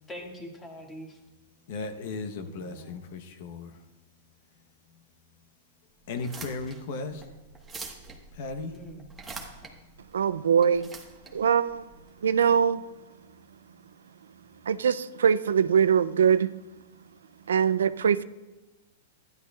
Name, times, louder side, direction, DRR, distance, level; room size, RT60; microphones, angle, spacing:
voice 1, 0.1-1.2 2.4-3.0 8.7-9.1, equal, 15° left, 1 dB, 1.8 m, -43 dB
voice 2, 1.7-3.7 6.1-7.2 8.3-8.7, left 3 dB, 60° left, 7 dB, 0.9 m, -36 dB
sound 1, 6.1-12.6, right 4 dB, 10° right, 1.2 m, -45 dB
voice 3, 10.1-10.9 11.3-11.8 12.2-12.8 14.7-16.5 17.5-18.2, right 7 dB, 90° right, 15 dB, 0.3 m, -22 dB
12.5 x 10.5 x 2.3 m, 1.1 s
hypercardioid pair, 135°, 0 cm